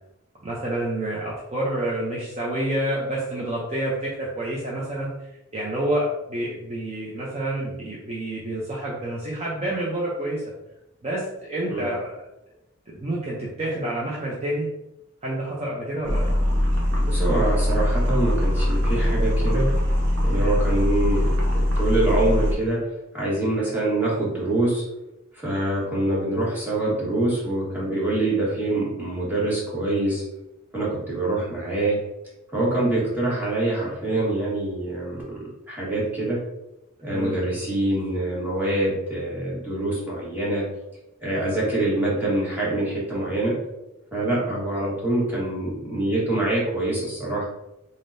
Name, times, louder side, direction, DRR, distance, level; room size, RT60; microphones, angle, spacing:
voice 1, 0.4-10.4 11.0-12.1 12.9-14.7 15.2-16.3 20.4-20.7 37.1-37.4, right 1 dB, 35° right, -5 dB, 0.6 m, -28 dB
sound 1, 16.0-22.5, left 1 dB, 65° right, 1.0 m, -22 dB
voice 2, 17.0-19.7 20.2-21.3 21.5-22.8 23.1-24.8 25.3-30.2 30.7-32.0 32.5-35.2 35.7-36.4 37.0-40.7 41.2-43.6 44.1-47.4, right 2 dB, 10° right, -7 dB, 1.4 m, -25 dB
3.7 x 3.6 x 2.6 m, 0.91 s
head